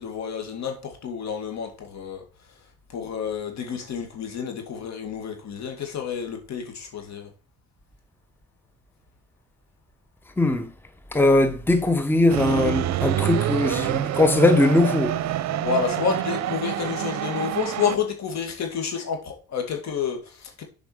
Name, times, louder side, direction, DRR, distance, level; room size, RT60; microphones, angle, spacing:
voice 1, 0.0-2.2 2.9-7.3 15.5-20.6, left 7 dB, 65° left, 2.4 m, -29 dB
voice 2, 10.4-10.7 11.1-15.2, left 2 dB, 5° left, 0.9 m, -20 dB
sound 1, 12.3-18.0, right 12 dB, 65° right, 0.6 m, -26 dB
7.2 x 5.2 x 5.0 m
cardioid pair, 80°, 29 cm